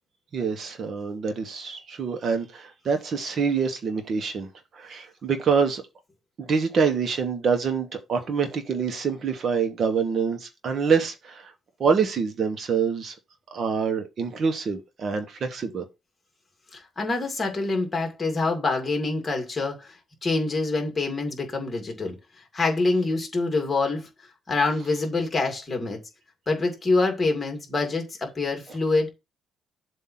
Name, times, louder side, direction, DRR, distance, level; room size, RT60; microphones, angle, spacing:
voice 1, 0.3-4.5 4.7-5.8 6.4-11.5 11.8-13.1 13.5-15.8, right 5 dB, 45° right, 1.1 m, -26 dB
voice 2, 16.7-20.0 20.2-22.1 22.5-24.1 24.5-26.0 26.5-29.1, left 3 dB, 20° left, 2.2 m, -25 dB
7.5 x 2.7 x 5.9 m
cardioid pair, 135°, 0 cm